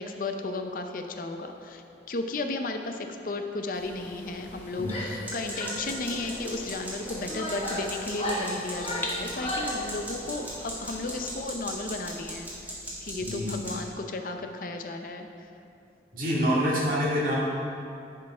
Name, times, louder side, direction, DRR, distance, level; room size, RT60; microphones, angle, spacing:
voice 1, 0.0-15.5, left 2 dB, 50° left, 5 dB, 0.6 m, -34 dB
sound 1, 3.7-11.3, left 1 dB, 10° left, 0.7 m, -44 dB
Female speech woman speaking / Yell, 4.8-5.2 5.5-6.4 7.0-9.8, left 1 dB, 35° left, 1.4 m, -34 dB
sound 2, 5.3-13.7, equal, 10° right, 1.8 m, -39 dB
voice 2, 13.2-13.5 16.1-17.4, equal, 50° right, -7 dB, 2.1 m, -26 dB
10.5 x 4.6 x 4.9 m, 2.6 s
head